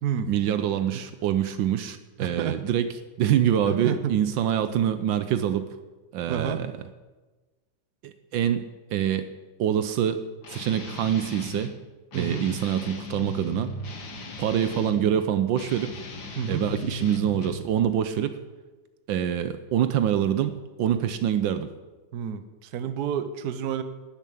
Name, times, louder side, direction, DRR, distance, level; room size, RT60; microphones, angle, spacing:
voice 1, 0.3-2.9 3.2-5.7 6.1-6.7 8.0-9.3 9.6-10.2 10.5-11.7 12.1-13.7 14.4-15.9 16.5-18.4 19.1-21.7, right 10 dB, 75° right, 10 dB, 1.4 m, -25 dB
voice 2, 2.2-2.6 3.6-4.2 6.3-6.6 12.1-12.5 16.4-16.7 22.1-23.8, right 8 dB, 60° right, 10 dB, 1.3 m, -29 dB
Guitar, 10.4-11.7 12.1-15.1 15.5-17.7, left 2 dB, 60° left, 2.0 m, -37 dB
12.0 x 7.2 x 8.5 m, 1.2 s
omnidirectional pair, 2.1 m